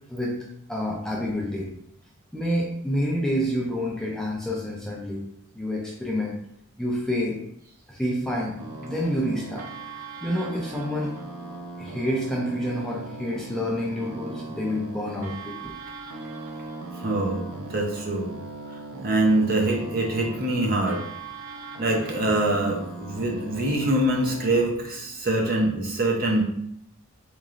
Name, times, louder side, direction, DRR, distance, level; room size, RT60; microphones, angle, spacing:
voice 1, 0.1-0.4 0.7-1.7 2.3-5.2 5.5-6.4 6.8-7.4 7.9-9.7 9.9-11.2 11.8-15.8, equal, ahead, -3 dB, 0.3 m, -28 dB
sound 1, 8.6-24.7, right 3 dB, 80° right, 0.5 m, -39 dB
voice 2, 17.0-18.3 19.0-21.1 21.8-26.4, right 1 dB, 40° right, 0 dB, 0.6 m, -24 dB
3.7 x 3.0 x 2.4 m, 0.69 s
head